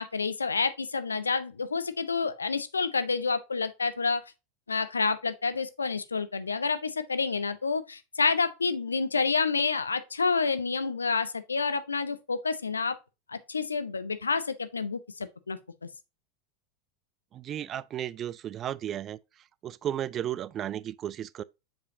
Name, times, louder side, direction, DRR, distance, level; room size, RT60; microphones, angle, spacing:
voice 1, 0.0-4.2 4.7-13.0 13.3-15.9, left 4 dB, 75° left, 0.6 m, -29 dB
voice 2, 17.3-19.2 19.6-21.4, right 11 dB, 30° right, 0.3 m, -34 dB
7.1 x 5.0 x 2.7 m
figure-of-eight pair, 85°, 0 cm